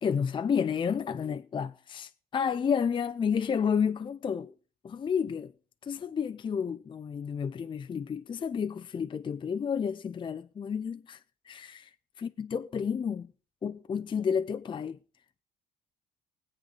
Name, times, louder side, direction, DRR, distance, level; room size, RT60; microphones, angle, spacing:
voice 1, 0.0-4.5 4.8-5.5 5.9-11.2 11.5-11.9 12.2-13.3 13.6-15.0, left 7 dB, 30° left, 0.5 m, -31 dB
20.5 x 8.2 x 4.0 m
cardioid pair, 110°, 17 cm